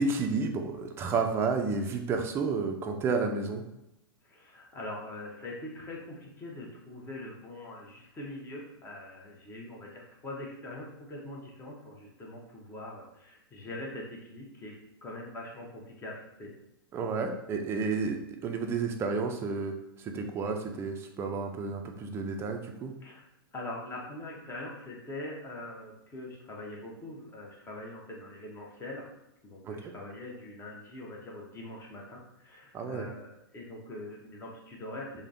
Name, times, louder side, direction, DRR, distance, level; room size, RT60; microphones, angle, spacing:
voice 1, 0.0-3.6 16.9-22.9 29.7-29.8 32.7-33.1, right 4 dB, 20° right, 4 dB, 0.3 m, -31 dB
voice 2, 4.2-14.7 15.0-16.5 17.8-18.0 23.0-23.2 23.5-29.1 29.4-35.3, left 1 dB, 20° left, -2 dB, 0.7 m, -43 dB
3.2 x 2.1 x 2.5 m, 0.83 s
hypercardioid pair, 110°, 13 cm